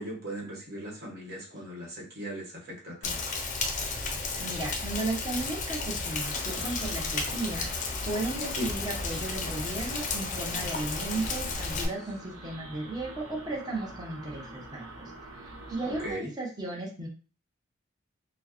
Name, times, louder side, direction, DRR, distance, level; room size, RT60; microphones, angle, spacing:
voice 1, 0.0-3.2 8.6-8.7 15.8-16.3, equal, 50° right, -2 dB, 1.3 m, -38 dB
Rain, 3.0-11.9, left 4 dB, 40° left, 0.5 m, -33 dB
voice 2, 4.4-7.7 8.1-15.1 15.4-17.1, right 2 dB, 20° right, -2 dB, 0.9 m, -35 dB
sound 1, 5.3-6.8 7.3-7.6 7.9-10.3 10.7-11.1 11.5-12.2, left 1 dB, 5° left, 1.0 m, -53 dB
sound 2, 6.1-16.1, right 1 dB, 80° right, 1.0 m, -46 dB
4.4 x 2.2 x 3.0 m, 0.38 s
head